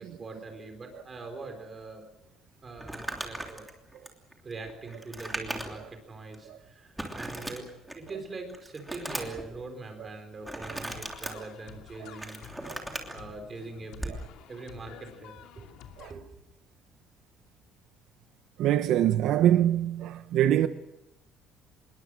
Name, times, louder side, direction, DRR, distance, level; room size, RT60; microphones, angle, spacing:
voice 1, 0.0-2.1 2.6-3.7 4.4-12.4 13.1-14.2 14.5-15.7 16.0-16.4, right 3 dB, 20° right, 4.2 m, -42 dB
Crumpling crinkling, 2.8-5.9 6.3-6.4 7.0-8.1 8.5-9.5 10.4-11.3 11.9-13.2 13.9-14.2, right 1 dB, 5° right, 3.1 m, -37 dB
sound 1, 10.9-16.1, left 9 dB, 75° left, 2.7 m, -50 dB
voice 2, 18.6-20.7, right 11 dB, 60° right, 0.9 m, -24 dB
26.5 x 21.5 x 6.4 m
cardioid pair, 175°, 0 cm